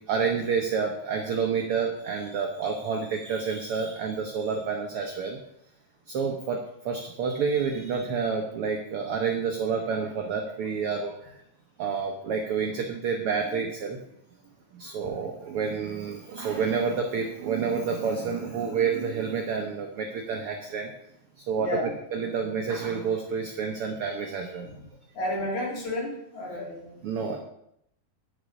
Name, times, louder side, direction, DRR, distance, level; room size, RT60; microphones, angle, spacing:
voice 1, 0.1-5.4 6.1-11.4 11.8-14.0 14.7-20.9 21.4-21.7 22.1-24.7 27.0-27.4, right 5 dB, 65° right, 2 dB, 1.4 m, -29 dB
voice 2, 21.6-21.9 24.6-24.8 25.1-27.0, left 1 dB, 65° left, -2 dB, 4.0 m, -32 dB
10.5 x 6.8 x 5.3 m, 0.76 s
omnidirectional pair, 3.7 m